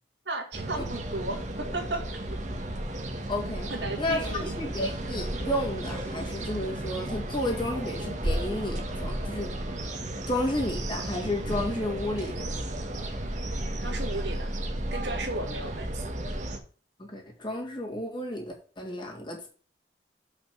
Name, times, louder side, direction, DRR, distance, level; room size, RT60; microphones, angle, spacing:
voice 1, 0.3-2.0 3.7-4.6 13.8-14.5 14.9-16.0, right 2 dB, 75° right, 3 dB, 2.2 m, -35 dB
sound 1, 0.5-16.6, right 1 dB, 40° right, 1.4 m, -33 dB
voice 2, 3.3-3.7 4.0-9.5 10.3-12.5 17.0-19.5, left 1 dB, 25° left, 0 dB, 2.7 m, -32 dB
7.2 x 5.7 x 6.1 m, 0.40 s
head